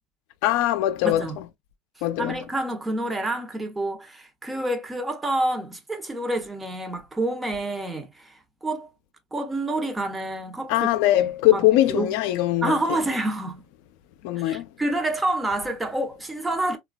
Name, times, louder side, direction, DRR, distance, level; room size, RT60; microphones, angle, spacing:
voice 1, 0.4-1.3 2.0-2.4 10.7-12.8 14.2-14.7, left 14 dB, 65° left, 0.5 m, -21 dB
voice 2, 1.0-1.4 2.2-8.9 9.3-10.9 11.2-12.2 12.6-13.6 14.4-16.8, right 2 dB, 10° right, 0.8 m, -28 dB
3.1 x 2.3 x 2.3 m
supercardioid pair, 110°, 0 cm